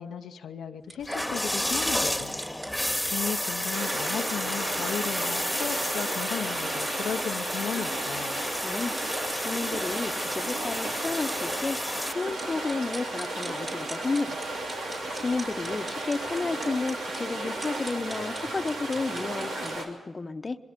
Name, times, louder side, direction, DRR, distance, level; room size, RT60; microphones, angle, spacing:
voice 1, 0.0-2.4 3.1-8.4, left 8 dB, 85° left, 5 dB, 0.7 m, -35 dB
sound 1, 0.8-19.8, right 2 dB, 45° right, 6.7 m, -45 dB
sound 2, 1.0-12.1, left 1 dB, 5° left, 1.8 m, -31 dB
sound 3, 3.7-19.9, right 2 dB, 90° right, 3.0 m, -34 dB
voice 2, 8.6-20.6, left 3 dB, 45° left, 9 dB, 1.0 m, -32 dB
22.5 x 22.5 x 5.3 m, 1.3 s
supercardioid pair, 50°, 0 cm